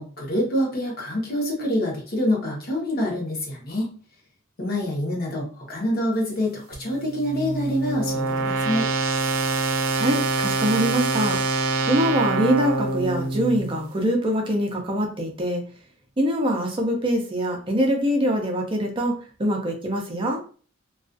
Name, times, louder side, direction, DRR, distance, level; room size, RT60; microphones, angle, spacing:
voice 1, 0.0-3.9 4.6-8.9, left 1 dB, 45° left, -1 dB, 0.9 m, -26 dB
sound 1, 6.7-13.9, right 3 dB, 85° right, 0.5 m, -25 dB
voice 2, 9.9-11.4 11.9-15.6 16.2-20.4, equal, 25° right, 1 dB, 0.4 m, -24 dB
2.3 x 2.3 x 2.4 m, 0.40 s
head